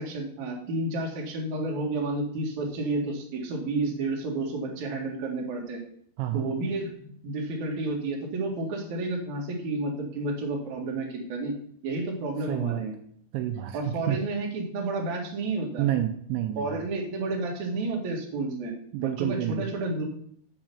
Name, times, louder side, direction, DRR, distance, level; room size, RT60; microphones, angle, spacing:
voice 1, 0.0-5.8 6.3-11.6 11.8-13.0 13.7-15.9 16.5-18.7 19.0-20.0, right 2 dB, 50° right, 0 dB, 2.5 m, -31 dB
voice 2, 6.2-6.5 12.5-12.8 13.3-14.2 15.8-16.8 18.9-19.7, right 13 dB, 80° right, 6 dB, 2.9 m, -29 dB
8.1 x 5.4 x 7.0 m, 0.63 s
omnidirectional pair, 5.4 m